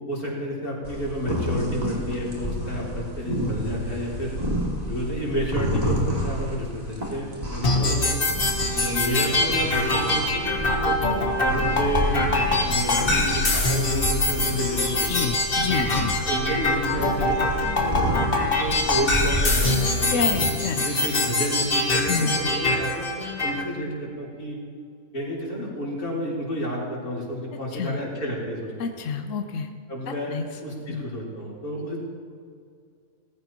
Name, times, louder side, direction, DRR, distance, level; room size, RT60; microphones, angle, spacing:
voice 1, 0.0-4.4 4.9-8.2 8.7-12.3 12.6-15.4 16.3-20.3 20.8-24.6 25.1-28.7 29.9-30.4 30.6-32.0, equal, 90° left, -5 dB, 4.3 m, -30 dB
sound 1, 0.8-20.5, equal, 25° right, 2.4 m, -30 dB
sound 2, 7.6-23.6, left 2 dB, 40° left, 1.8 m, -24 dB
voice 2, 15.1-16.1 20.1-21.1 22.1-22.4 27.7-28.0 28.8-29.7 30.3-30.5 30.9-31.0, left 6 dB, 65° left, 6 dB, 1.1 m, -28 dB
18.5 x 15.5 x 3.0 m, 2.2 s
omnidirectional pair, 1.5 m